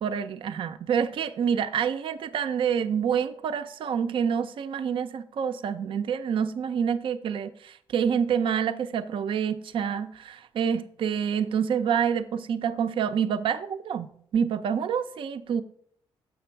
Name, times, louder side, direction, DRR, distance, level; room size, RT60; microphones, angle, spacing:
voice 1, 0.0-15.6, right 7 dB, 65° right, 0.5 m, -27 dB
7.1 x 6.0 x 4.5 m
cardioid pair, 80°, 10 cm